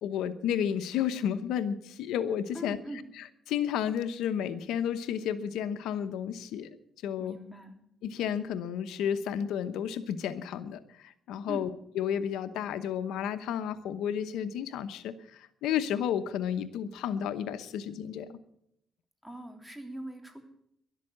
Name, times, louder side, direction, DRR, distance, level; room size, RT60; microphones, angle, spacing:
voice 1, 0.0-2.8 3.2-6.7 7.0-7.3 8.0-11.7 11.9-18.4, left 9 dB, 90° left, 11 dB, 0.9 m, -32 dB
voice 2, 2.5-3.0 7.2-7.7 11.5-11.7 19.2-20.4, right 1 dB, 5° right, 4 dB, 3.1 m, -42 dB
12.5 x 12.0 x 8.7 m, 0.75 s
cardioid pair, 90°, 0 cm